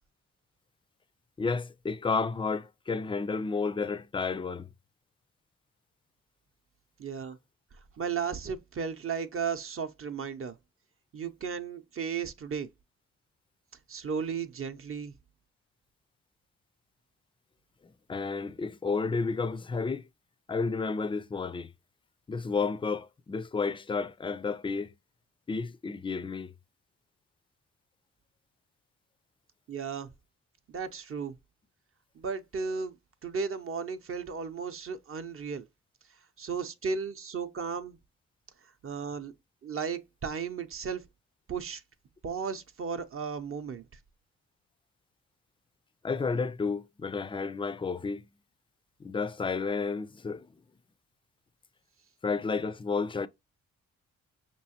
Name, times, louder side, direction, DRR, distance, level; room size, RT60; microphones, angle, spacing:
voice 1, 1.4-4.7 17.8-20.0 20.5-21.7 22.3-24.9 25.5-26.5 46.0-48.3 49.0-50.5 52.2-53.3, left 4 dB, 15° left, 0.4 m, -31 dB
voice 2, 7.0-7.4 8.0-10.6 11.1-12.7 13.9-15.1 29.7-30.1 30.7-31.3 32.1-32.9 33.2-35.6 36.4-38.0 38.6-39.3 39.6-41.0 41.5-41.8 42.2-43.9, right 6 dB, 45° right, 0.6 m, -35 dB
5.5 x 3.0 x 2.8 m
cardioid pair, 70°, 30 cm